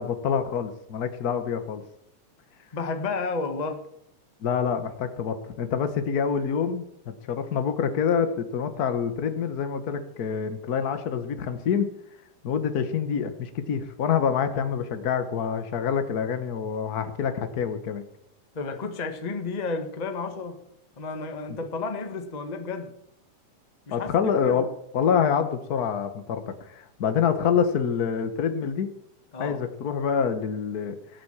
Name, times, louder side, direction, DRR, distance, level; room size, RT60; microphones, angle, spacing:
voice 1, 0.0-1.8 4.4-6.8 7.3-11.9 12.4-18.0 21.5-21.6 23.9-24.7 24.9-28.9 29.4-30.9, left 7 dB, 55° left, 9 dB, 1.0 m, -26 dB
voice 2, 2.7-3.8 18.5-20.6 21.0-22.9 23.9-24.6 29.3-29.6, left 4 dB, 25° left, 6 dB, 0.8 m, -32 dB
19.0 x 8.7 x 7.4 m, 0.78 s
omnidirectional pair, 3.6 m